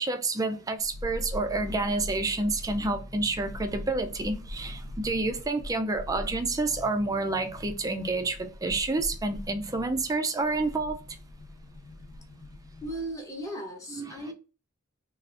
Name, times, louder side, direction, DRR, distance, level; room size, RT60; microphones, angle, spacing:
voice 1, 0.0-11.0 13.9-14.3, right 3 dB, 15° right, 0.3 m, -29 dB
sound 1, 0.8-13.2 13.4-13.5, left 1 dB, 80° left, 0.6 m, -41 dB
voice 2, 12.8-14.3, right 1 dB, 15° left, 0.7 m, -36 dB
3.3 x 2.4 x 2.4 m
head